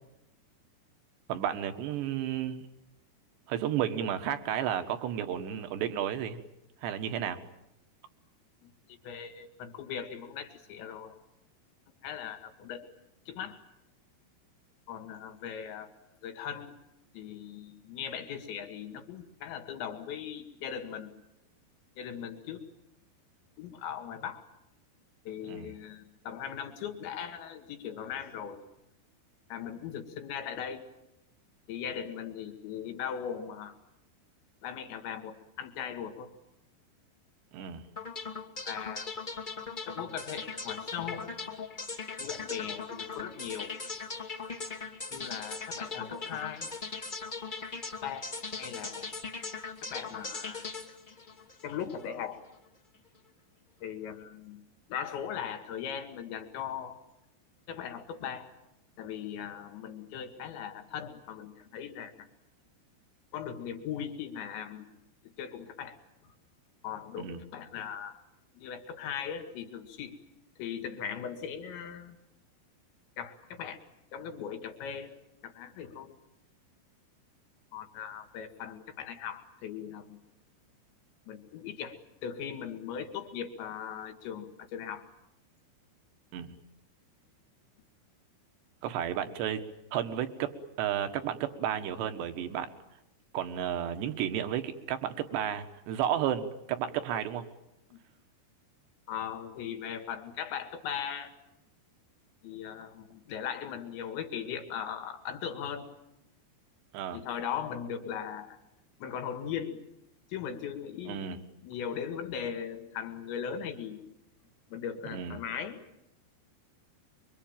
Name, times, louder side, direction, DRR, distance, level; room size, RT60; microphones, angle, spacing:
voice 1, 1.3-2.6 3.5-6.4 6.8-7.4 25.5-25.7 37.5-37.8 67.2-67.4 86.3-86.5 88.8-89.6 89.9-92.7 93.3-97.5 106.9-107.2 111.1-111.4 115.1-115.4, right 10 dB, 70° right, 9 dB, 3.6 m, -32 dB
voice 2, 8.6-11.2 12.0-12.9 13.3-13.6 14.9-15.9 16.2-16.7 17.1-21.1 22.0-22.6 23.6-24.4 25.3-28.6 29.5-30.8 31.7-33.8 34.6-36.3 38.7-39.2 39.9-41.3 42.2-43.7 45.1-46.7 48.0-48.3 48.6-49.1 49.8-50.7 51.6-52.4 53.8-54.6 54.9-57.0 57.7-58.5 59.0-62.3 63.3-65.0 65.4-66.0 66.2-66.4 66.8-68.2 68.5-70.2 70.6-72.2 73.2-73.8 74.1-76.2 77.7-80.2 81.3-85.1 97.9-98.0 99.1-101.3 102.4-105.9 107.1-108.6 109.0-109.8 110.3-111.3 111.6-114.0 114.7-115.8, left 8 dB, 75° left, 6 dB, 4.3 m, -39 dB
sound 1, 38.0-52.0, left 4 dB, 25° left, 1.0 m, -39 dB
25.5 x 24.0 x 9.1 m, 0.86 s
omnidirectional pair, 5.4 m